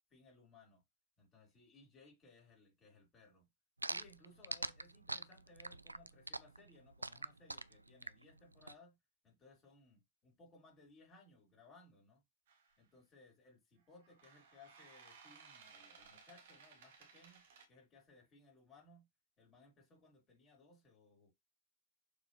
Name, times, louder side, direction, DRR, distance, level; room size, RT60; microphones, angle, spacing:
voice 1, 0.1-0.8 1.2-3.5 3.8-9.0 9.2-12.2 12.8-19.1 19.4-21.3, left 2 dB, 30° left, 4.6 m, -63 dB
sound 1, 3.8-8.7, right 2 dB, 80° right, 0.4 m, -43 dB
sound 2, 12.5-12.8 14.0-17.7, right 5 dB, 55° right, 2.0 m, -60 dB
6.8 x 5.2 x 3.2 m
figure-of-eight pair, 90°, 0 cm